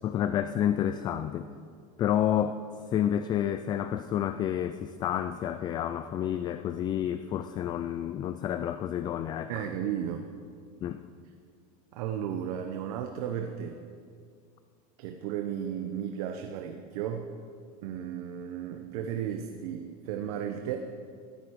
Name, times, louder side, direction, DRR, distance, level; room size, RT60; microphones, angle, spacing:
voice 1, 0.0-1.5 2.0-2.7 2.9-9.6 10.8-11.1, left 10 dB, 20° left, 11 dB, 0.3 m, -29 dB
voice 2, 9.5-10.2 11.9-13.8 15.0-17.3 17.8-20.8, right 9 dB, 70° right, 5 dB, 1.1 m, -34 dB
16.0 x 13.5 x 4.8 m, 2.2 s
supercardioid pair, 160°, 19 cm